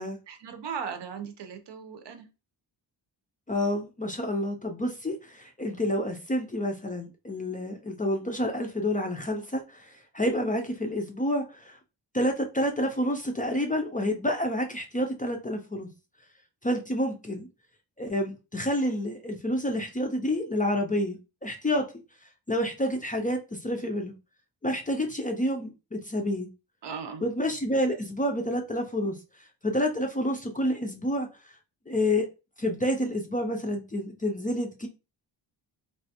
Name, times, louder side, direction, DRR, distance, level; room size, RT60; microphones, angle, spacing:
voice 1, 0.3-2.3 26.8-27.2, right 6 dB, 65° right, 7 dB, 0.7 m, -37 dB
voice 2, 3.5-11.8 12.1-15.9 16.6-17.5 18.0-21.9 22.5-24.1 24.6-26.5 27.2-31.3 31.9-32.3 32.6-34.9, left 1 dB, 20° left, 3 dB, 0.4 m, -29 dB
3.2 x 2.3 x 2.8 m, 0.29 s
wide cardioid pair, 95°, 45 cm